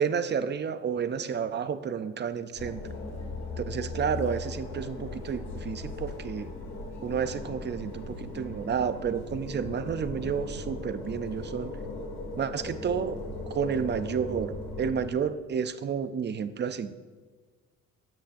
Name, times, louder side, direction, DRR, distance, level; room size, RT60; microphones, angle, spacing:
voice 1, 0.0-2.8 3.6-6.5 7.0-11.7 12.4-13.2 13.5-16.9, right 7 dB, 35° right, 12 dB, 0.5 m, -31 dB
sound 1, 2.6-15.1, left 2 dB, 60° left, 2.5 m, -38 dB
13.0 x 7.8 x 2.6 m, 1.4 s
cardioid pair, 90°, 30 cm